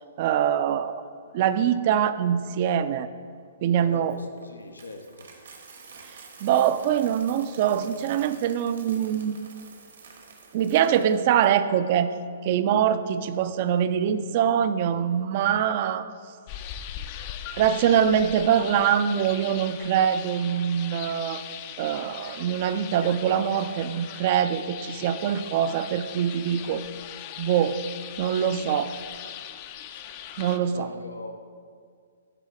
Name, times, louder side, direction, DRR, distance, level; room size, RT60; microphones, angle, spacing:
voice 1, 0.2-1.0 1.3-3.1 3.6-4.2 6.0-9.4 10.5-12.1 12.4-16.1 17.6-21.4 21.8-26.8 27.4-27.8 28.2-28.9 30.4-30.9, right 9 dB, 45° right, 12 dB, 0.3 m, -24 dB
voice 2, 3.8-5.3 30.7-31.3, left 2 dB, 90° left, 5 dB, 0.5 m, -40 dB
Coin (dropping), 4.1-11.5, right 4 dB, 70° right, 1.2 m, -48 dB
sound 1, 16.5-30.6, left 10 dB, 40° left, 0.4 m, -40 dB
11.5 x 4.0 x 3.4 m, 2.1 s
hypercardioid pair, 125°, 0 cm